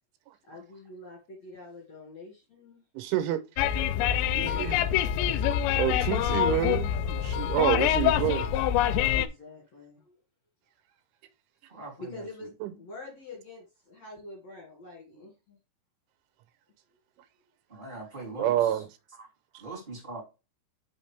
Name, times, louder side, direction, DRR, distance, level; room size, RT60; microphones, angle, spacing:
voice 1, 0.4-2.8 9.1-10.2 12.0-12.5 12.8-15.6, left 2 dB, 50° left, 2.2 m, -45 dB
voice 2, 3.0-3.4 3.7-3.8 4.3-4.8 5.8-8.5 12.6-12.7 18.4-18.9, right 13 dB, 85° right, 3.2 m, -28 dB
sound 1, 3.6-9.3, left 10 dB, 85° left, 2.6 m, -25 dB
voice 3, 11.7-12.2 17.7-18.8 19.1-19.3 19.6-20.2, right 2 dB, 15° right, 2.2 m, -41 dB
7.0 x 5.4 x 3.3 m
omnidirectional pair, 5.5 m